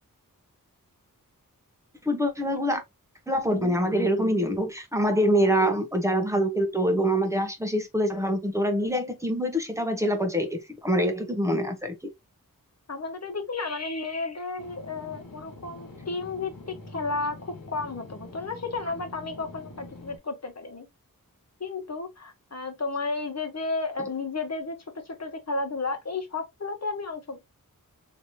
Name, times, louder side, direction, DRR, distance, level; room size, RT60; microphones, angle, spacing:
voice 1, 2.0-2.8 3.3-11.9, equal, 10° right, 0.9 m, -25 dB
voice 2, 12.9-16.5 16.9-20.9 21.6-24.8 25.1-27.4, left 3 dB, 45° left, 1.1 m, -33 dB
sound 1, 14.6-20.2, left 2 dB, 75° left, 1.3 m, -45 dB
3.2 x 2.9 x 2.8 m
wide cardioid pair, 75°, 35 cm